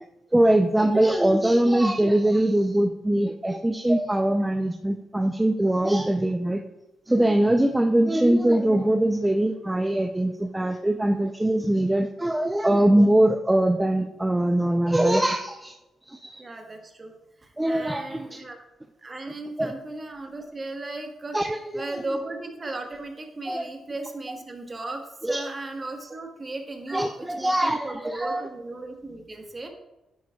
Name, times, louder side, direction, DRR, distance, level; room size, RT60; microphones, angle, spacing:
voice 1, 0.3-6.6 7.1-15.8 16.1-16.4 17.6-18.4 19.6-19.7 21.3-22.0 23.5-23.7 25.2-25.5 26.9-28.4, right 1 dB, 10° right, 5 dB, 0.5 m, -22 dB
voice 2, 16.4-17.1 17.4-18.6 19.0-21.4 21.7-29.7, right 2 dB, 30° right, 3 dB, 1.4 m, -36 dB
9.4 x 9.4 x 2.3 m, 1.0 s
cardioid pair, 85°, 0 cm